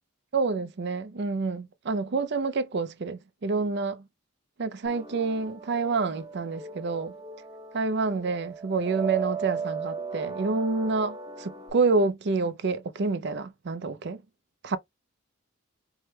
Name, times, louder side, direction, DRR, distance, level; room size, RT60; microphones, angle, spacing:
voice 1, 0.3-4.0 4.6-7.1 7.7-14.2 14.6-14.8, right 4 dB, 55° right, 0.5 m, -28 dB
sound 1, 4.8-11.7, right 5 dB, 20° right, 0.9 m, -37 dB
4.5 x 2.1 x 3.3 m
head